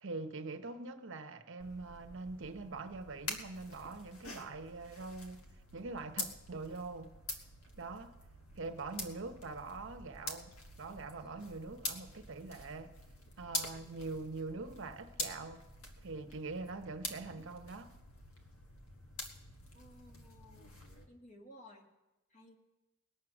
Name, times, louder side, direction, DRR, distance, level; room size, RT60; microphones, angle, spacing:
voice 1, 0.0-7.1 7.8-8.1 8.6-10.5 10.8-12.9 13.4-15.6 16.0-17.9, right 3 dB, 60° right, 0.8 m, -43 dB
sound 1, 1.6-21.0, left 2 dB, 85° left, 1.5 m, -46 dB
voice 2, 19.7-20.8 21.1-21.9 22.3-22.6, left 1 dB, 35° left, 1.7 m, -57 dB
20.5 x 7.8 x 6.0 m
head